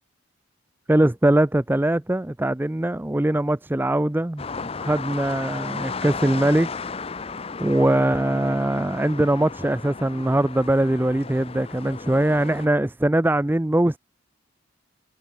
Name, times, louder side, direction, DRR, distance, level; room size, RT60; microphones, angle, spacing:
voice 1, 0.9-4.4 4.8-6.7 7.6-14.0, right 1 dB, 10° right, 0.4 m, -21 dB
sound 1, 4.4-12.7, left 4 dB, 30° left, 0.6 m, -34 dB
head